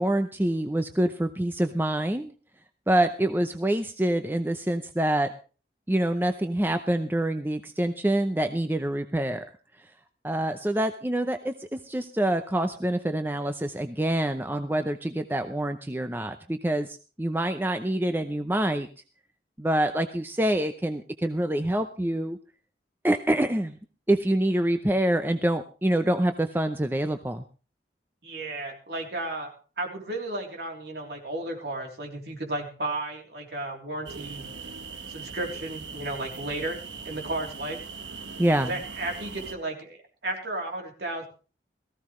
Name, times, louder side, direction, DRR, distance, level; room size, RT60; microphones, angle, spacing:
voice 1, 0.0-2.3 2.9-5.3 5.9-9.4 10.2-18.9 19.6-22.4 23.0-23.8 24.1-27.4 38.4-38.8, right 1 dB, 10° right, 7 dB, 0.6 m, -26 dB
voice 2, 28.2-34.5 35.1-36.8 37.0-37.8 38.6-41.3, right 2 dB, 65° right, 2 dB, 3.3 m, -34 dB
sound 1, 34.1-39.6, right 5 dB, 80° right, 1.3 m, -40 dB
18.0 x 15.0 x 3.2 m, 0.35 s
head